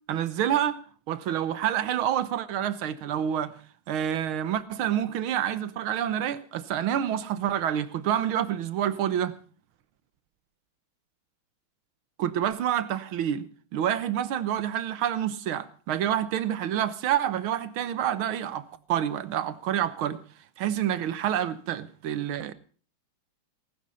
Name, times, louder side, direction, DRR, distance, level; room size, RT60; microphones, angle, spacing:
voice 1, 0.1-0.8 1.1-3.6 3.9-9.3 12.2-13.4 13.7-20.2 20.6-22.5, right 10 dB, 90° right, 1.8 m, -28 dB
19.0 x 11.5 x 5.6 m
omnidirectional pair, 2.2 m